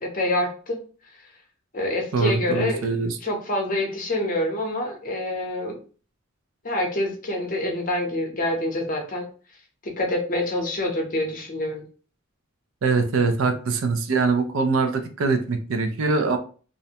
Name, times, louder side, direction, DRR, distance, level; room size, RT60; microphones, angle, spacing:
voice 1, 0.0-0.8 1.7-5.8 6.6-9.3 9.8-11.8, left 1 dB, 40° left, 2 dB, 0.6 m, -26 dB
voice 2, 2.1-3.2 12.8-16.4, right 4 dB, 75° right, 7 dB, 0.4 m, -23 dB
2.4 x 2.1 x 2.7 m, 0.39 s
head